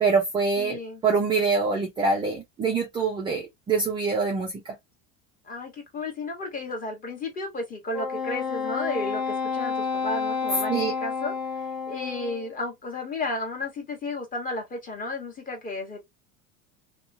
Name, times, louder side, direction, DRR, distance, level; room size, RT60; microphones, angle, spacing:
voice 1, 0.0-4.7 10.7-10.9, right 4 dB, 15° right, 0.3 m, -25 dB
voice 2, 0.6-1.0 5.4-11.3 11.9-16.0, left 2 dB, 20° left, 1.0 m, -33 dB
Wind instrument woodwind instrument, 7.9-12.5, left 5 dB, 45° left, 0.8 m, -30 dB
2.9 x 2.1 x 2.5 m
cardioid pair, 155°, 38 cm